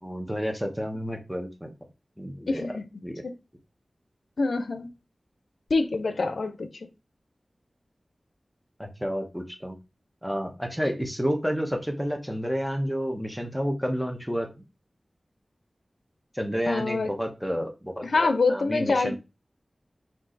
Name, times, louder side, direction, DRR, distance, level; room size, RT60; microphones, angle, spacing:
voice 1, 0.0-1.7 2.2-2.7 3.0-3.2 8.8-9.7 10.2-14.5 16.3-19.2, equal, ahead, 1.0 m, -30 dB
voice 2, 2.5-2.9 4.4-4.9 5.7-6.7 16.7-17.1 18.0-19.2, left 3 dB, 85° left, 0.5 m, -25 dB
4.6 x 2.7 x 3.9 m
wide cardioid pair, 75°, 0 cm